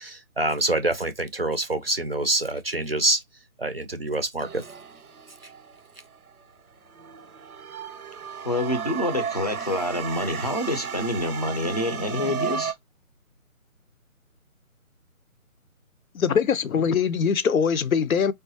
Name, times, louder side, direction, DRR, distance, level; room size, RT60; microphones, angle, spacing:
voice 1, 0.0-3.2 3.6-4.6, right 2 dB, 45° right, 0.4 m, -26 dB
sound 1, 4.4-6.3 6.9-12.7, right 6 dB, 85° right, 0.7 m, -34 dB
voice 2, 8.4-12.7, left 1 dB, 30° left, 0.5 m, -27 dB
voice 3, 16.1-18.3, left 6 dB, 75° left, 0.5 m, -22 dB
3.5 x 2.3 x 2.7 m
figure-of-eight pair, 155°, 43 cm